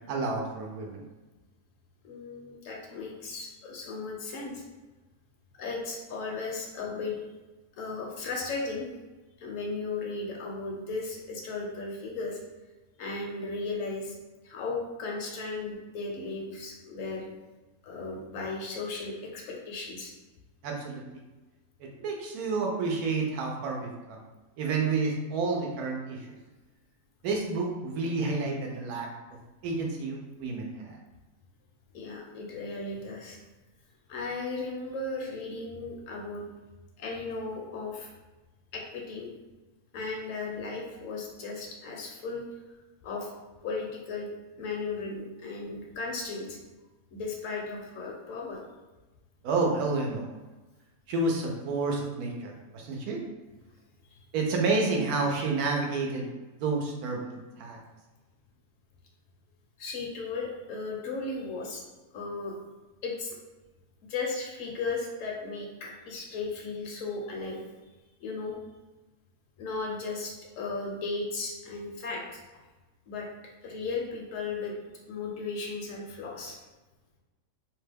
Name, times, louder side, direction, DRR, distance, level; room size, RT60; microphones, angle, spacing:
voice 1, 0.1-1.0 20.6-21.2 21.8-24.2 24.6-26.3 27.2-29.1 29.6-31.0 49.4-50.3 51.1-53.2 54.3-56.3 56.6-57.8, right 3 dB, 85° right, 0 dB, 1.1 m, -30 dB
voice 2, 2.0-4.6 5.5-7.2 7.8-8.9 9.4-12.4 13.0-14.2 14.4-17.3 17.8-20.1 31.9-33.4 34.1-36.4 37.0-38.1 38.7-39.3 39.9-42.5 43.0-43.3 43.6-44.3 44.6-46.6 47.1-48.6 54.0-54.2 59.8-61.8 62.1-62.6 63.0-63.4 64.1-67.6 68.2-68.5 69.6-72.4 73.1-73.3 73.6-74.7 75.1-76.6, left 3 dB, 70° left, -1 dB, 0.9 m, -36 dB
2.8 x 2.2 x 3.3 m, 1.2 s
omnidirectional pair, 1.6 m